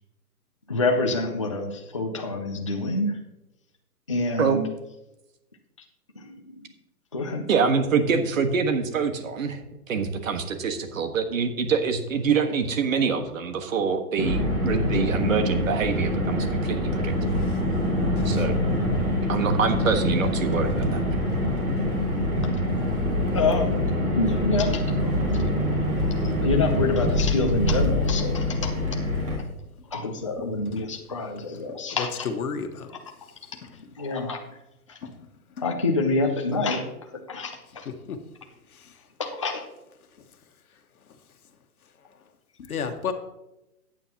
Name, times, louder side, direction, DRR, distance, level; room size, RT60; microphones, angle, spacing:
voice 1, 0.7-3.2 4.1-4.7 6.2-6.5 7.1-7.4 23.3-23.8 24.2-25.1 26.4-28.7 29.9-32.3 34.0-34.4 34.9-35.0 35.6-36.8 37.3-37.9 39.2-39.6, left 2 dB, 20° left, 1 dB, 0.5 m, -26 dB
voice 2, 7.5-9.6 9.9-17.4 18.2-18.6 19.3-21.0, right 5 dB, 55° right, 7 dB, 1.6 m, -25 dB
Car, 14.2-29.4, left 1 dB, 20° right, 1.8 m, -25 dB
voice 3, 30.2-30.8 32.2-32.9 35.0-35.1 38.1-38.2 42.6-43.1, left 6 dB, 65° left, 5 dB, 1.5 m, -32 dB
13.5 x 9.0 x 2.9 m, 0.92 s
hypercardioid pair, 165°, 47 cm